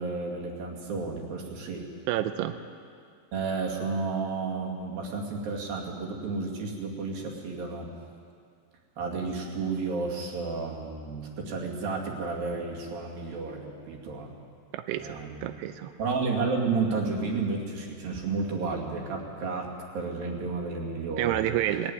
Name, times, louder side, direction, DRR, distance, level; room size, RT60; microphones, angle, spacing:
voice 1, 0.0-1.9 3.3-7.9 9.0-14.3 14.9-15.5 16.0-21.6, right 4 dB, 55° right, -1 dB, 3.7 m, -32 dB
voice 2, 2.1-2.6 14.7-15.9 21.2-21.9, right 13 dB, 85° right, 9 dB, 2.4 m, -29 dB
20.5 x 14.5 x 9.5 m, 2.2 s
omnidirectional pair, 5.5 m